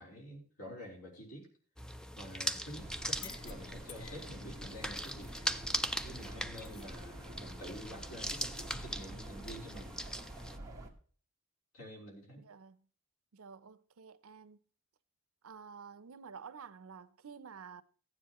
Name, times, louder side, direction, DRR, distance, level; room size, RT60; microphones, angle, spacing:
voice 1, 0.0-1.5 2.2-5.4 6.0-9.9 11.7-12.4, equal, 80° left, 4.0 m, -48 dB
sound 1, 1.8-10.6, equal, 5° left, 0.4 m, -40 dB
sound 2, 2.8-10.9, right 1 dB, 15° right, 1.3 m, -48 dB
sound 3, 3.1-4.3 4.8-6.3 6.6-6.9 8.2-8.9, left 8 dB, 55° left, 0.7 m, -55 dB
voice 2, 12.4-12.9 13.3-14.6 15.4-17.8, right 6 dB, 70° right, 0.6 m, -51 dB
15.0 x 9.7 x 3.0 m
head